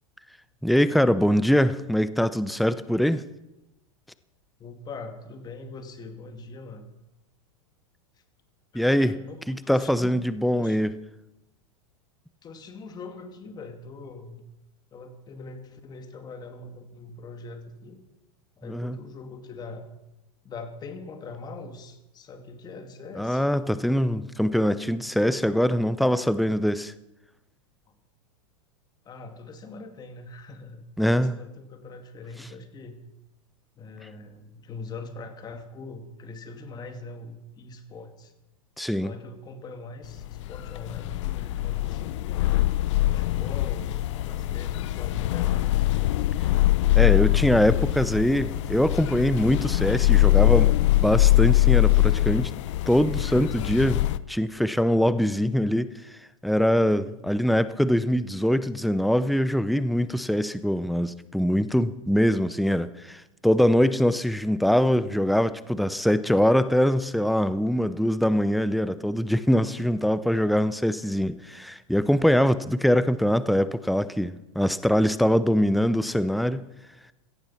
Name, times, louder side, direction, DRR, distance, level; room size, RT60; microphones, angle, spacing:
voice 1, 0.6-3.2 8.7-9.1 9.5-10.9 18.7-19.0 23.2-26.9 31.0-31.3 38.8-39.1 47.0-50.7 51.0-52.5 52.9-54.0 54.3-55.9 56.4-76.6, equal, ahead, 0.6 m, -23 dB
voice 2, 4.6-6.9 8.1-8.2 8.7-10.3 10.6-10.9 12.4-14.4 14.9-18.0 18.6-19.9 20.4-23.4 27.9-28.0 29.0-33.0 33.8-38.3 39.0-42.6 43.1-45.9 57.1-57.2, left 3 dB, 25° left, 2.3 m, -42 dB
sound 1, 40.0-54.2, left 16 dB, 60° left, 0.8 m, -23 dB
17.0 x 14.0 x 5.9 m
hypercardioid pair, 130°, 17 cm